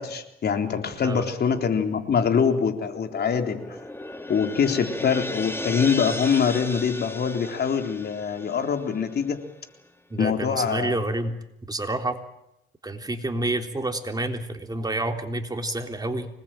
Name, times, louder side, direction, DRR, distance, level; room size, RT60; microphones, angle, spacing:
voice 1, 0.0-3.8 4.3-9.4 10.2-11.0, left 6 dB, 55° left, 5 dB, 3.8 m, -24 dB
sound 1, 3.0-9.5, left 2 dB, 10° left, 2.4 m, -36 dB
voice 2, 10.1-11.4 11.7-12.2 12.8-16.3, right 2 dB, 20° right, 5 dB, 3.5 m, -28 dB
25.5 x 20.0 x 9.1 m, 0.83 s
cardioid pair, 90°, 20 cm